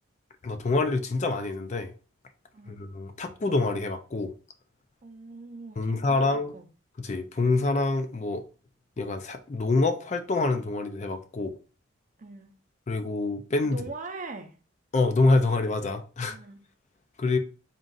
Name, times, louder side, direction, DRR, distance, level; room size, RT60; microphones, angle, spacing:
voice 1, 0.4-1.9 2.7-4.3 5.8-6.5 7.0-8.4 9.0-11.5 12.9-13.8 14.9-16.4 17.2-17.4, left 3 dB, 35° left, 0.4 m, -26 dB
voice 2, 5.0-6.1 6.5-6.7 12.2-12.5 13.6-14.6 16.3-16.6, right 3 dB, 40° right, 0.6 m, -41 dB
3.7 x 2.4 x 3.9 m
head